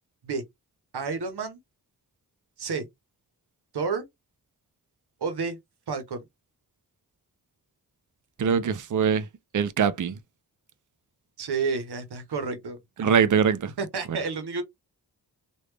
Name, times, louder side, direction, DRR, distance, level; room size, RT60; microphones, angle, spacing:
voice 1, 0.9-1.6 2.6-2.9 3.7-4.0 5.2-5.6 5.9-6.2 11.4-12.8 13.8-14.6, right 4 dB, 75° right, 1.0 m, -30 dB
voice 2, 8.4-9.3 9.5-10.2 13.0-13.7 14.1-14.2, right 7 dB, 50° right, 0.6 m, -23 dB
3.2 x 2.5 x 3.4 m
cardioid pair, 50°, 39 cm